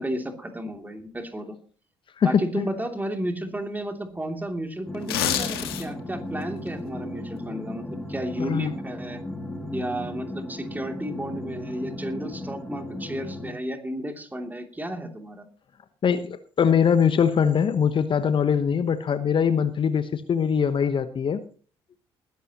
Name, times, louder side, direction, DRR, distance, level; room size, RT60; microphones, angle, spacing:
voice 1, 0.0-1.5 2.2-9.2 9.7-15.4, right 1 dB, 15° right, 5 dB, 2.9 m, -32 dB
voice 2, 2.2-2.6 8.4-8.7 16.0-21.4, left 7 dB, 40° left, 12 dB, 1.1 m, -22 dB
sound 1, 4.8-13.5, left 1 dB, 5° left, 2.5 m, -36 dB
sound 2, 4.9-6.1 6.5-6.7, left 10 dB, 80° left, 1.7 m, -27 dB
20.5 x 11.5 x 3.0 m, 0.41 s
figure-of-eight pair, 50°, 12 cm